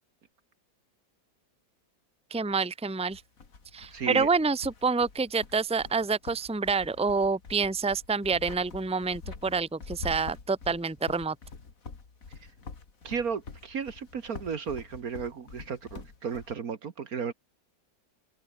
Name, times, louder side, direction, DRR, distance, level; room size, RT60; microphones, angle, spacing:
voice 1, 2.3-3.2 3.7-11.3, right 4 dB, 5° right, 1.3 m, -28 dB
sound 1, 3.1-16.5, left 4 dB, 45° left, 2.8 m, -45 dB
voice 2, 3.9-4.3 13.0-17.3, right 6 dB, 50° right, 1.7 m, -34 dB
omnidirectional pair, 2.0 m